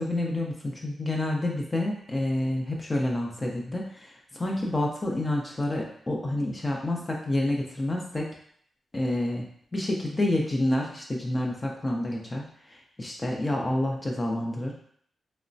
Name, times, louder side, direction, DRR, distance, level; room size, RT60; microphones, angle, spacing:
voice 1, 0.0-8.3 8.9-9.4 9.7-14.7, left 1 dB, 30° left, 0 dB, 0.4 m, -28 dB
3.0 x 2.0 x 2.6 m, 0.63 s
cardioid pair, 80°, 0 cm